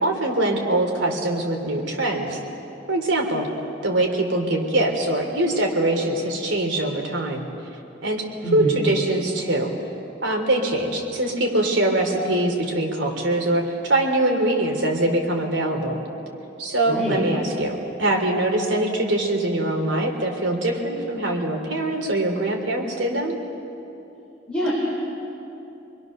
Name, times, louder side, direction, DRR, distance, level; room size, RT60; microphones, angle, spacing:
voice 1, 0.0-2.4 2.9-3.5 3.8-7.4 8.0-8.3 8.5-9.7 10.2-16.0 16.6-17.7 18.0-23.4, right 1 dB, 80° right, 1 dB, 3.3 m, -23 dB
voice 2, 8.4-8.8 16.9-17.2 24.5-24.7, equal, 5° left, -6 dB, 3.7 m, -25 dB
27.5 x 21.5 x 6.6 m, 2.8 s
head